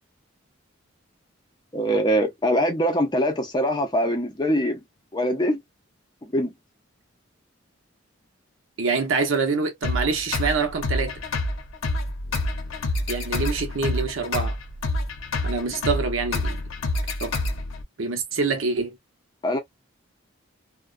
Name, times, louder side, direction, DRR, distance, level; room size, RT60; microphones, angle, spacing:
voice 1, 1.7-4.8 5.1-5.6 6.2-6.5 19.4-19.6, equal, 20° left, 0.5 m, -23 dB
voice 2, 8.8-11.2 13.1-14.6 15.4-16.6 17.2-17.3 18.0-19.0, right 4 dB, 75° right, 0.7 m, -25 dB
sound 1, 9.8-17.8, left 2 dB, 85° left, 0.8 m, -28 dB
2.3 x 2.2 x 2.4 m
head